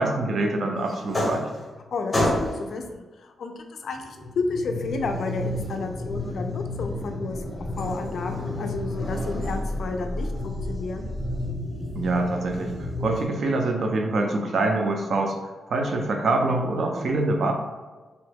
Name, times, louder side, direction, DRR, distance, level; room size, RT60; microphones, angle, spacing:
voice 1, 0.0-1.5 12.0-12.7 13.0-15.3 15.7-17.5, right 2 dB, 50° right, 3 dB, 0.4 m, -25 dB
sound 1, 0.9-1.8 2.1-2.8 3.9-13.3, left 1 dB, 15° left, 0.7 m, -30 dB
voice 2, 1.9-7.4 7.8-11.1, left 4 dB, 55° left, 4 dB, 0.3 m, -32 dB
2.9 x 2.2 x 3.3 m, 1.3 s
wide cardioid pair, 165°, 0 cm